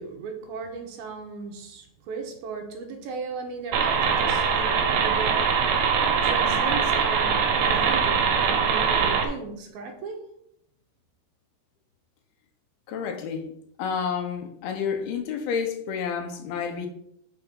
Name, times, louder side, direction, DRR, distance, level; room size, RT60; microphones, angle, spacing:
voice 1, 0.0-5.9 6.2-10.3, right 4 dB, 75° right, 3 dB, 2.6 m, -36 dB
sound 1, 3.7-9.3, right 6 dB, 90° right, 3.3 m, -22 dB
voice 2, 12.9-13.5 13.8-16.9, left 6 dB, 75° left, 5 dB, 2.5 m, -30 dB
6.9 x 5.4 x 5.2 m, 0.73 s
omnidirectional pair, 4.7 m